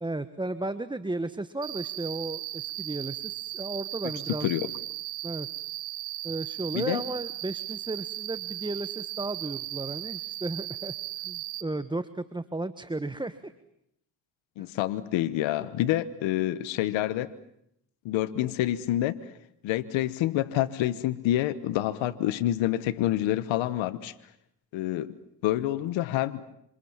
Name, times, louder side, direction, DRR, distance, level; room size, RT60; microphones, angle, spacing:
voice 1, 0.0-4.5 5.2-5.5 6.2-10.9 11.2-13.5 14.6-14.7, right 2 dB, 10° right, 12 dB, 1.3 m, -34 dB
Cricket, 1.6-11.6, right 14 dB, 80° right, 2.3 m, -37 dB
voice 2, 14.6-17.3 18.0-19.2 19.6-24.1 24.7-25.1 25.4-26.4, left 14 dB, 85° left, 14 dB, 1.3 m, -27 dB
27.0 x 27.0 x 7.4 m, 0.75 s
cardioid pair, 75°, 45 cm